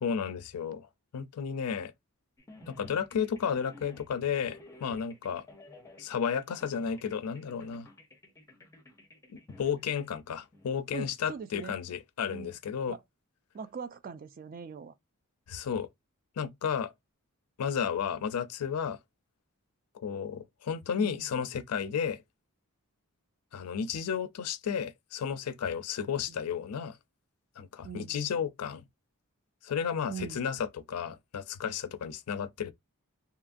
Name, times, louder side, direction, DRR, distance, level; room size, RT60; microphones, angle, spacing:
voice 1, 0.0-0.9 1.1-1.9 2.7-5.5 6.0-7.9 9.3-13.0 15.5-15.9 16.4-16.9 17.6-19.0 19.9-22.2 23.5-27.0 27.6-28.8 29.6-32.7, left 7 dB, 80° left, 0.4 m, -33 dB
sound 1, 2.4-10.7, left 1 dB, 15° left, 0.6 m, -54 dB
voice 2, 10.9-11.7 12.3-12.5 12.9-13.0 13.5-14.9 20.9-21.3 26.3-26.4 27.8-28.2 30.1-30.4, right 6 dB, 40° right, 0.3 m, -41 dB
2.8 x 2.4 x 2.4 m
head